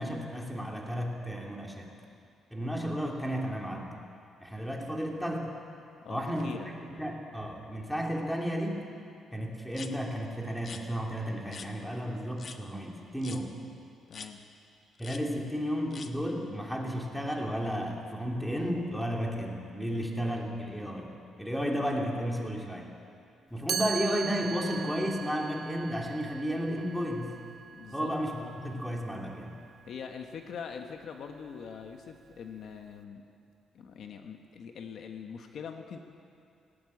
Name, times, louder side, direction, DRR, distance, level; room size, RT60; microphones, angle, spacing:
voice 1, 0.0-1.9 2.5-4.0 4.4-5.5 6.1-6.6 7.0-8.9 9.3-13.5 15.0-21.1 21.4-22.9 23.5-27.3 27.9-29.6, equal, ahead, 0 dB, 3.1 m, -33 dB
voice 2, 6.0-6.7 14.1-14.4 27.7-28.1 29.9-33.2 33.7-36.0, left 6 dB, 65° left, 5 dB, 1.4 m, -43 dB
sound 1, 9.7-9.9 10.6-10.8 11.5-11.7 12.4-12.6 13.2-13.4 14.1-14.3 15.0-15.2 15.9-16.1, left 5 dB, 45° left, 1.3 m, -44 dB
Chime, 23.7-29.5, right 7 dB, 45° right, 0.6 m, -39 dB
18.5 x 17.5 x 8.7 m, 2.5 s
cardioid pair, 115°, 0 cm